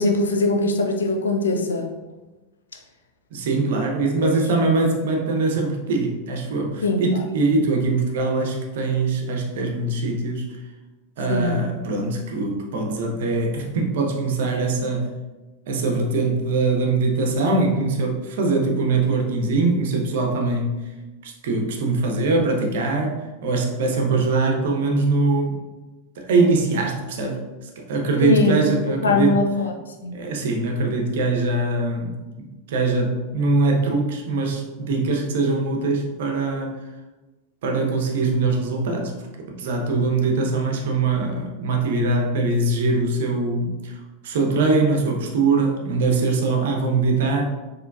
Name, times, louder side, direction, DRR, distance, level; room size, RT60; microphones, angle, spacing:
voice 1, 0.0-1.9 4.2-4.3 6.8-7.0 11.3-11.6 28.2-28.6 29.0-29.7 30.0-30.2, left 2 dB, 80° left, 3 dB, 0.5 m, -21 dB
voice 2, 3.3-10.5 11.2-15.1 15.7-20.8 21.2-25.6 26.2-27.4 27.8-29.4 30.1-32.2 32.7-36.8 37.6-39.1 39.5-44.0 44.2-47.4, right 3 dB, 65° right, 2 dB, 0.7 m, -22 dB
4.4 x 3.0 x 2.3 m, 1.1 s
figure-of-eight pair, 90°, 0 cm